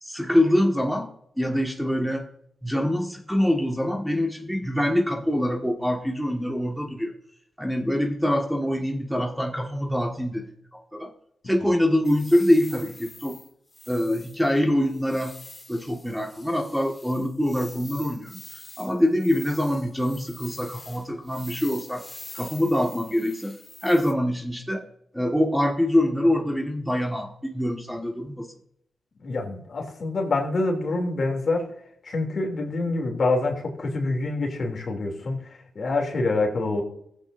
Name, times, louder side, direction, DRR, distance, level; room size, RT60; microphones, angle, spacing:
voice 1, 0.0-1.1 1.4-2.3 2.6-7.1 7.6-11.1 11.4-13.4 13.9-15.4 15.7-18.4 18.8-22.0 22.3-23.6 23.8-24.8 25.1-28.5, left 1 dB, ahead, 2 dB, 1.7 m, -24 dB
sound 1, 12.0-24.1, left 2 dB, 20° left, 2.3 m, -45 dB
voice 2, 29.2-31.7 32.0-36.8, left 2 dB, 60° left, 2 dB, 2.9 m, -26 dB
15.0 x 8.5 x 2.6 m, 0.72 s
supercardioid pair, 45°, 0 cm